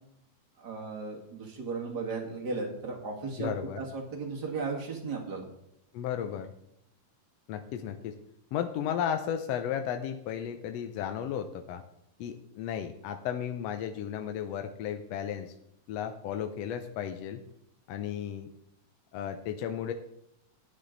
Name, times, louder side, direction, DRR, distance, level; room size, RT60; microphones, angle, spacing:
voice 1, 0.6-5.5, right 4 dB, 35° right, 1 dB, 2.2 m, -36 dB
voice 2, 3.4-3.8 5.9-6.5 7.5-8.1 8.5-11.8 12.2-15.5 15.9-17.4 17.9-18.5 19.1-19.9, left 9 dB, 75° left, 7 dB, 1.5 m, -34 dB
11.5 x 9.8 x 3.9 m, 0.79 s
omnidirectional pair, 3.6 m